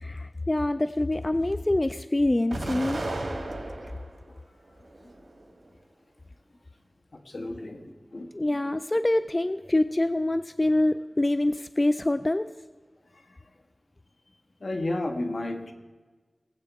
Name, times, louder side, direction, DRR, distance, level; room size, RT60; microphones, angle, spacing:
voice 1, 0.0-3.0 8.3-12.5, left 1 dB, 30° left, 12 dB, 0.3 m, -25 dB
Explosion, 2.5-4.2 4.7-5.6, right 2 dB, 80° right, 2.0 m, -34 dB
voice 2, 7.2-8.3 14.6-15.7, left 2 dB, 70° left, 5 dB, 1.4 m, -32 dB
19.0 x 8.0 x 4.7 m, 1.3 s
wide cardioid pair, 60°, 0 cm